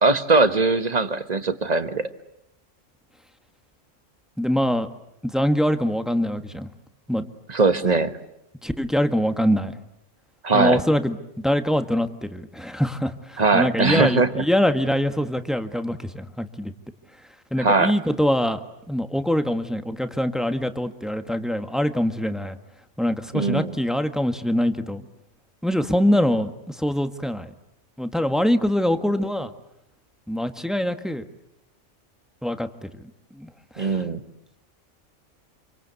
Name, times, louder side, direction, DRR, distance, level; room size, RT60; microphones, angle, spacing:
voice 1, 0.0-2.1 7.5-8.1 10.4-10.8 13.4-14.4 17.6-17.9 23.3-23.8 33.8-34.2, right 3 dB, 35° right, 10 dB, 1.5 m, -20 dB
voice 2, 4.4-4.9 5.2-6.7 7.1-7.3 8.6-9.8 10.5-11.2 11.4-16.7 17.5-18.6 18.9-22.6 23.0-25.0 25.6-27.5 28.0-29.5 30.3-31.2 32.4-32.9 33.4-33.5 33.7-34.0, equal, ahead, 8 dB, 1.5 m, -24 dB
27.5 x 25.0 x 8.3 m, 0.82 s
omnidirectional pair, 1.3 m